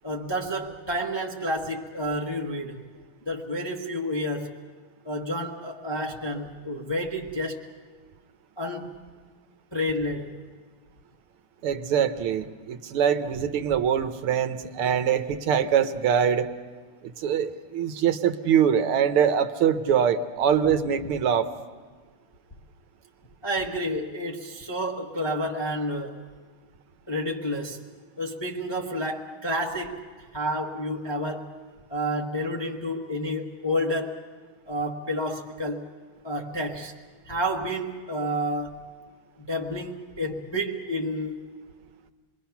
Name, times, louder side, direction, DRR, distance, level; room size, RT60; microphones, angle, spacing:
voice 1, 0.0-2.8 3.2-4.6 5.0-7.7 8.6-9.1 9.7-10.4 23.4-26.2 27.1-27.8 28.2-30.0 30.3-31.5 31.9-34.2 34.7-35.9 36.2-36.9 37.2-38.9 39.4-41.4, equal, 20° left, 0.6 m, -30 dB
voice 2, 11.6-16.5 17.0-21.5, right 8 dB, 80° right, 1.8 m, -23 dB
27.5 x 21.5 x 5.8 m
omnidirectional pair, 2.4 m